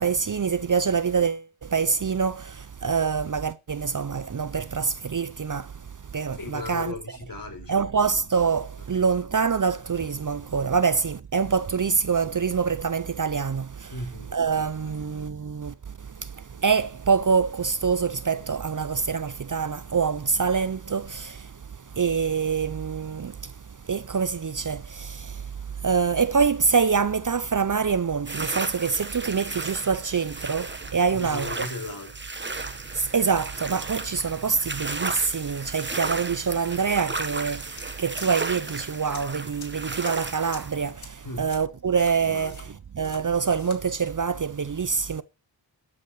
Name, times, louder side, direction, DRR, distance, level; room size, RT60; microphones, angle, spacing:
voice 1, 0.0-5.7 6.1-6.9 7.7-13.9 14.3-15.7 16.2-21.5 22.0-23.5 23.9-25.5 25.8-31.5 32.9-42.6 42.9-45.2, right 5 dB, 40° right, 0.7 m, -25 dB
voice 2, 6.3-8.2 13.9-15.1 31.1-32.3 41.2-41.5 41.8-42.0 42.2-42.8, left 2 dB, 45° left, 4.6 m, -38 dB
sound 1, 28.3-40.9, right 3 dB, 25° right, 1.3 m, -34 dB
sound 2, 37.8-37.9 38.2-38.7 39.1-39.2 39.6-39.7 40.0-40.1 40.5-40.6 41.0-41.1 41.5-41.6 42.0-42.6 43.0-43.2 43.5-43.8, left 5 dB, 80° left, 2.5 m, -44 dB
12.5 x 6.1 x 6.5 m
wide cardioid pair, 65°, 46 cm